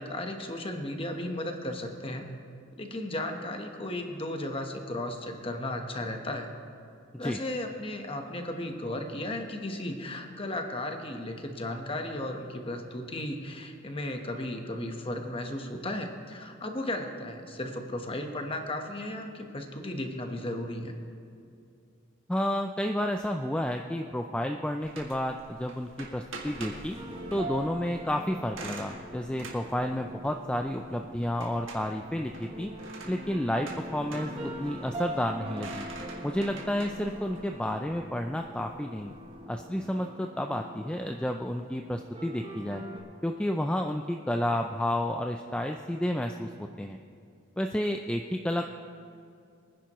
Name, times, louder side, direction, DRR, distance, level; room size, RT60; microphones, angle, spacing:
voice 1, 0.0-2.2 2.8-6.5 7.2-20.9, left 1 dB, 25° left, 4 dB, 1.1 m, -35 dB
voice 2, 22.3-27.0 27.3-32.7 33.1-35.9 36.2-39.1 39.5-42.8 43.2-47.0 47.6-48.7, left 1 dB, 5° left, 4 dB, 0.3 m, -31 dB
sound 1, 24.8-39.3, right 2 dB, 65° right, 1.9 m, -46 dB
sound 2, 27.0-43.0, equal, 25° right, 1.1 m, -42 dB
23.5 x 10.5 x 3.1 m, 2.4 s
head